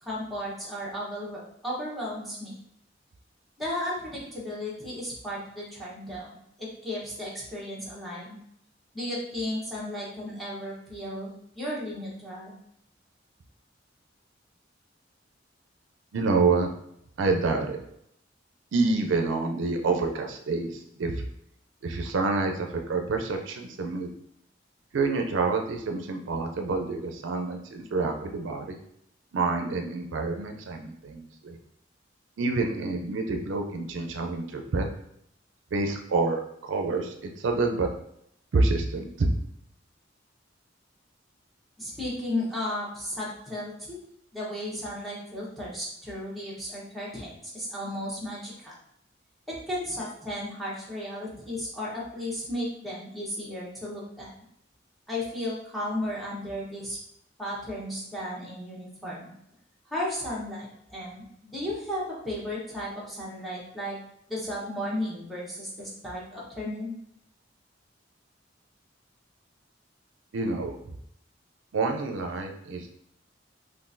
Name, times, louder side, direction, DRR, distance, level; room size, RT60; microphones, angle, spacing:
voice 1, 0.0-2.5 3.6-6.3 6.6-8.4 8.9-12.5 41.8-44.0 44.3-48.8 49.5-54.3 55.1-57.0 57.4-59.3 59.8-64.0 64.3-67.0, left 1 dB, ahead, -7 dB, 0.9 m, -34 dB
voice 2, 16.1-16.7 17.2-17.8 18.7-21.1 21.8-24.1 24.9-28.7 29.3-31.6 32.4-34.9 35.7-36.4 36.7-37.9 38.5-39.3 70.3-70.7 71.7-72.9, right 3 dB, 80° right, 4 dB, 0.4 m, -27 dB
3.7 x 2.5 x 2.6 m, 0.73 s
head